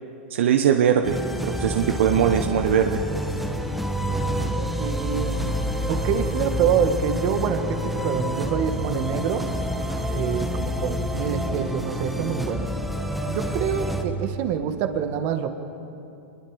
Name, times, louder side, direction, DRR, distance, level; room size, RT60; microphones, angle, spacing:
voice 1, 0.3-1.2 1.4-3.0, right 9 dB, 75° right, 5 dB, 1.1 m, -20 dB
sound 1, 1.0-14.0, equal, ahead, 1.7 m, -28 dB
voice 2, 4.8-5.3 5.9-9.4 10.1-12.7 13.3-15.5, right 8 dB, 50° right, 7 dB, 1.7 m, -26 dB
24.5 x 21.5 x 5.0 m, 2.7 s
hypercardioid pair, 115°, 7 cm